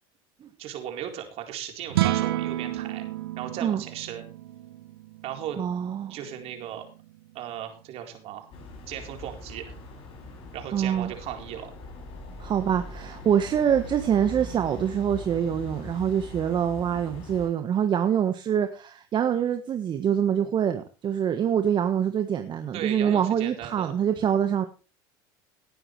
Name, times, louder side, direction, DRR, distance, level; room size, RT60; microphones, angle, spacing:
voice 1, 0.6-3.0 3.4-4.2 5.2-5.6 6.1-6.9 7.3-8.5 8.9-9.7 10.5-11.7 22.7-23.9, right 10 dB, 55° right, 4 dB, 4.2 m, -36 dB
sound 1, 1.9-8.3, right 14 dB, 90° right, 1.1 m, -32 dB
voice 2, 5.6-6.1 10.7-11.1 12.4-24.6, right 9 dB, 40° right, 8 dB, 1.4 m, -25 dB
sound 2, 8.5-17.5, left 2 dB, 50° left, 7.1 m, -41 dB
18.0 x 9.9 x 3.3 m, 0.34 s
supercardioid pair, 95°, 12 cm